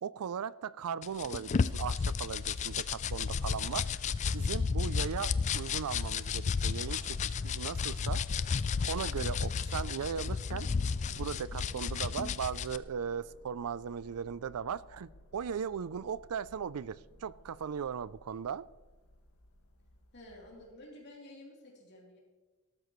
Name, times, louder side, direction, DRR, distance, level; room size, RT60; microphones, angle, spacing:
voice 1, 0.0-3.9 4.3-8.2 8.9-10.7 11.2-18.6, right 7 dB, 75° right, 19 dB, 0.4 m, -38 dB
sound 1, 1.0-12.8, left 5 dB, 30° left, 0.3 m, -33 dB
sound 2, 1.1-20.7, left 1 dB, 75° left, 1.9 m, -56 dB
voice 2, 9.1-9.6 20.1-22.2, left 1 dB, 50° left, -3 dB, 3.4 m, -52 dB
19.0 x 13.0 x 3.1 m, 1.2 s
head